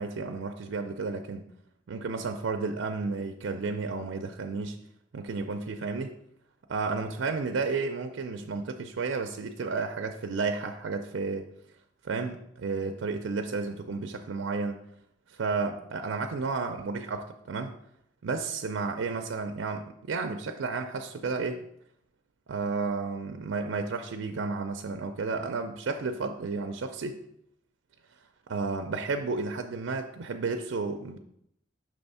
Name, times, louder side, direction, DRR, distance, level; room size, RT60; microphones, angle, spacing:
voice 1, 0.0-1.5 1.9-4.8 5.1-6.1 6.7-11.5 12.0-14.8 15.3-17.7 18.2-21.6 22.5-27.2 28.5-31.2, right 4 dB, 85° right, 6 dB, 0.5 m, -32 dB
6.1 x 3.5 x 5.4 m, 0.75 s
head